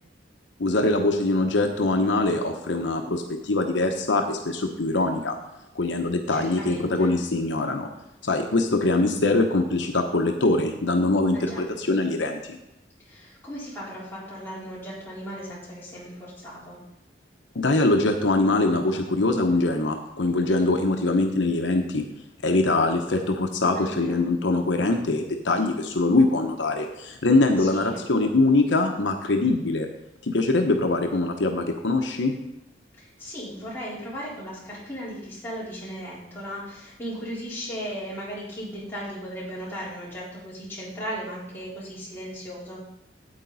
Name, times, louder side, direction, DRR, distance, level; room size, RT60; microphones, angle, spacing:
voice 1, 0.6-5.4 5.7-7.9 8.2-12.6 17.5-22.0 22.4-29.9 30.2-32.3, left 2 dB, 80° left, 4 dB, 0.9 m, -23 dB
voice 2, 6.3-7.1 11.3-11.6 13.0-16.8 23.7-24.3 27.6-28.0 33.0-42.8, equal, 10° left, -9 dB, 4.0 m, -36 dB
9.0 x 8.7 x 4.0 m, 0.90 s
head